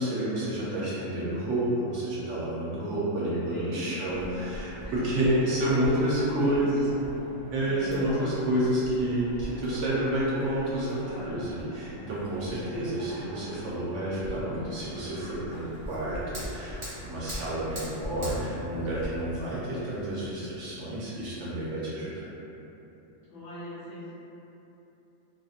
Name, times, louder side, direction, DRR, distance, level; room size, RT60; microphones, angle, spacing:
voice 1, 0.0-6.9 7.5-22.2, right 1 dB, 65° right, -8 dB, 1.0 m, -29 dB
voice 2, 3.0-4.2 4.8-5.7 6.0-6.9 7.6-8.6 23.3-24.2, left 1 dB, 65° left, -12 dB, 0.9 m, -40 dB
sound 1, 4.0-19.1, equal, 20° right, 0.5 m, -43 dB
Fire, 15.7-21.7, right 1 dB, 35° right, 1.0 m, -41 dB
2.7 x 2.6 x 2.4 m, 2.9 s
omnidirectional pair, 1.4 m